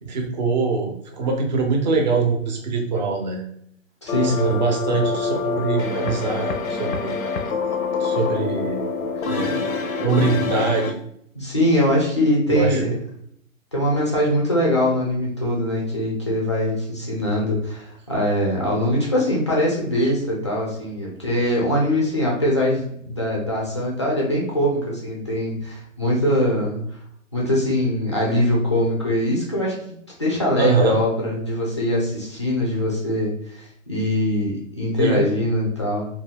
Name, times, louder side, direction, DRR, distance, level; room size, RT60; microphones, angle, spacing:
voice 1, 0.0-3.4 4.2-7.2 7.4-7.5 8.0-8.8 9.2-9.7 10.0-11.0 12.5-13.0 30.6-31.0 35.0-35.3, right 4 dB, 35° right, 2 dB, 0.5 m, -23 dB
voice 2, 4.0-4.6 11.3-12.9 13.7-26.8 27.3-29.7 30.2-36.1, left 1 dB, 25° left, -3 dB, 0.3 m, -22 dB
sound 1, 4.1-10.9, left 4 dB, 85° left, 0.5 m, -25 dB
2.3 x 2.3 x 3.2 m, 0.70 s
hypercardioid pair, 140°, 41 cm